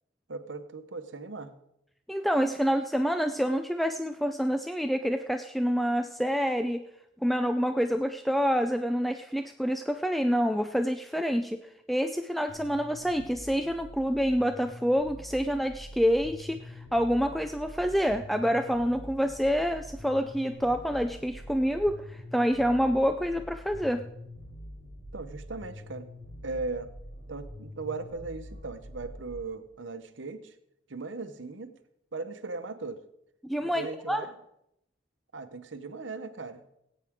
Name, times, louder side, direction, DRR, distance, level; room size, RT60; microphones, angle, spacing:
voice 1, 0.3-1.5 25.1-26.1 26.4-26.9 27.3-30.5 30.9-31.7 32.1-33.0 33.6-34.3 35.3-36.6, right 3 dB, 80° right, 10 dB, 1.0 m, -38 dB
voice 2, 2.1-6.8 7.2-11.6 11.9-24.0 33.5-34.2, equal, ahead, 7 dB, 0.3 m, -27 dB
sound 1, 12.5-29.4, equal, 60° left, 4.9 m, -45 dB
18.5 x 9.0 x 3.7 m, 0.80 s
head